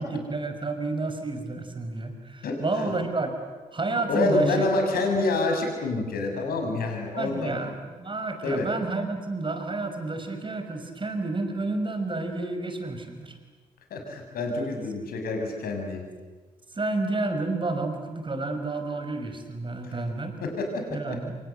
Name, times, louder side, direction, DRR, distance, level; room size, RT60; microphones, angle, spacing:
voice 1, 0.0-3.3 3.7-4.7 7.2-13.3 16.7-20.3 20.9-21.4, right 2 dB, 25° right, 6 dB, 5.7 m, -30 dB
voice 2, 4.1-7.6 8.4-8.7 13.9-16.0 19.8-19.9 20.4-20.7, left 2 dB, 55° left, 3 dB, 6.7 m, -27 dB
27.5 x 26.5 x 8.1 m, 1.3 s
figure-of-eight pair, 40°, 18 cm